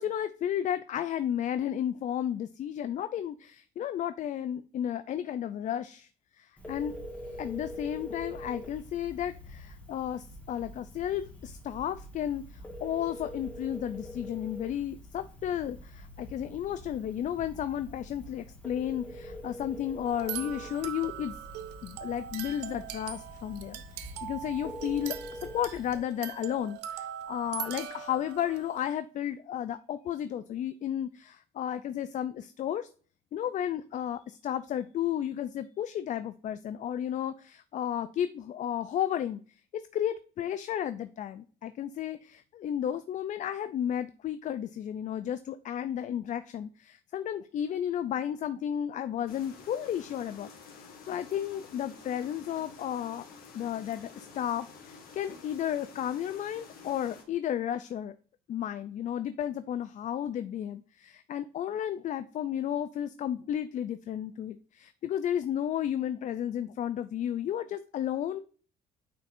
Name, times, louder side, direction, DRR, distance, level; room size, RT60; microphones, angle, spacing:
voice 1, 0.0-6.1 6.4-6.9 7.4-21.4 21.8-32.9 33.3-39.4 39.7-50.5 51.1-53.3 53.5-58.1 58.5-68.4, left 10 dB, 45° left, 12 dB, 0.4 m, -33 dB
Telephone, 6.6-26.0, equal, 10° left, 1.8 m, -45 dB
sound 1, 20.0-28.9, right 10 dB, 85° right, 0.7 m, -41 dB
sound 2, 49.3-57.2, left 5 dB, 65° left, 1.8 m, -50 dB
9.3 x 4.2 x 2.6 m, 0.40 s
cardioid pair, 110°, 17 cm